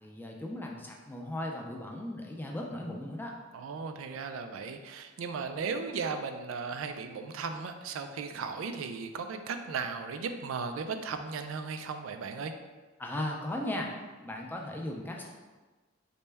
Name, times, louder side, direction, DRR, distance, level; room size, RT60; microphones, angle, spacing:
voice 1, 0.0-3.4 13.0-13.9 14.2-15.3, left 1 dB, 10° left, 0 dB, 0.4 m, -37 dB
voice 2, 3.5-12.5, right 5 dB, 90° right, 7 dB, 0.3 m, -36 dB
4.0 x 2.2 x 3.3 m, 1.3 s
head